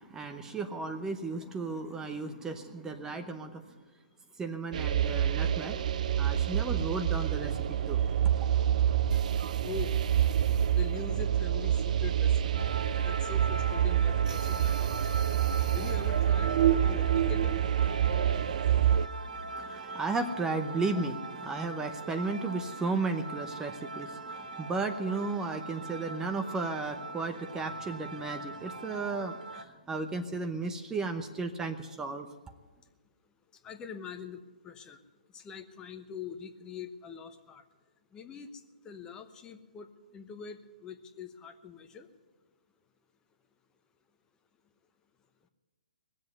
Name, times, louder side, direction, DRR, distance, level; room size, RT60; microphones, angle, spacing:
voice 1, 0.0-3.7 4.4-5.8 6.2-8.2 19.2-32.3, right 3 dB, 10° right, 7 dB, 0.8 m, -34 dB
sound 1, 4.7-19.1, right 10 dB, 60° right, 0.6 m, -27 dB
voice 2, 10.7-12.6 13.0-15.4 15.7-17.5 33.6-34.4 34.6-35.0 35.3-37.6 38.1-38.5 38.8-42.1, left 6 dB, 15° left, 8 dB, 1.0 m, -43 dB
sound 2, 12.5-29.6, right 2 dB, 85° right, 1.5 m, -41 dB
19.5 x 7.7 x 9.4 m, 1.2 s
hypercardioid pair, 140°, 5 cm